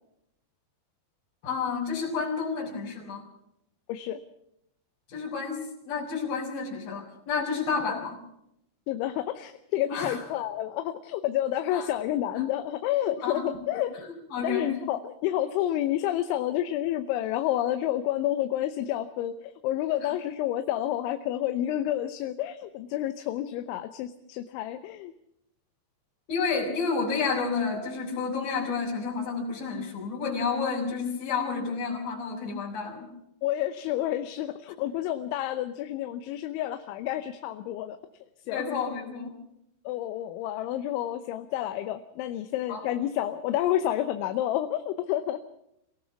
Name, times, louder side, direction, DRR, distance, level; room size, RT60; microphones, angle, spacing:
voice 1, 1.4-3.2 5.1-8.2 9.9-10.2 11.7-11.9 13.2-13.5 13.9-14.8 20.0-20.1 26.3-33.1 38.5-39.4 42.7-42.9, left 5 dB, 50° left, -6 dB, 6.0 m, -30 dB
voice 2, 3.9-4.2 7.9-8.0 8.9-13.9 14.4-25.1 33.4-38.0 38.5-38.7 39.9-45.4, left 12 dB, 80° left, 9 dB, 3.2 m, -29 dB
26.0 x 17.5 x 5.8 m, 0.80 s
omnidirectional pair, 5.4 m